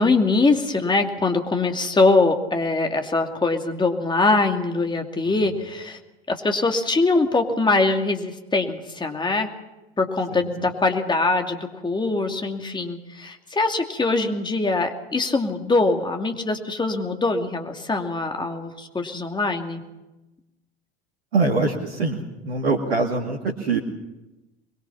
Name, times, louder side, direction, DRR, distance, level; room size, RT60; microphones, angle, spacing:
voice 1, 0.0-6.0 6.3-9.5 10.0-19.8, left 3 dB, 15° left, 4 dB, 2.6 m, -22 dB
voice 2, 5.2-5.6 10.3-10.7 21.3-23.8, right 3 dB, 70° right, -1 dB, 2.3 m, -24 dB
22.5 x 22.5 x 5.8 m, 1.0 s
figure-of-eight pair, 75°, 32 cm